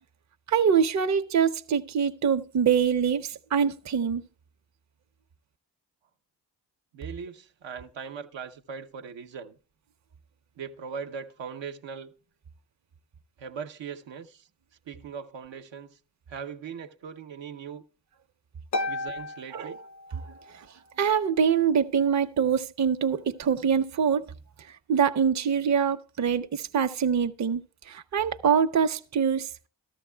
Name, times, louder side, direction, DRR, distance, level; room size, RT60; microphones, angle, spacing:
voice 1, 0.5-4.2 19.5-19.7 21.0-24.2 24.9-27.6 27.9-29.5, right 7 dB, 40° right, 0.6 m, -24 dB
voice 2, 6.9-9.6 10.6-12.1 13.4-14.5 14.9-16.0 16.3-17.8 18.9-19.8, right 6 dB, 80° right, 0.8 m, -40 dB
Harp, 18.7-20.6, left 2 dB, 40° left, 0.6 m, -34 dB
14.0 x 13.0 x 2.2 m
cardioid pair, 45°, 43 cm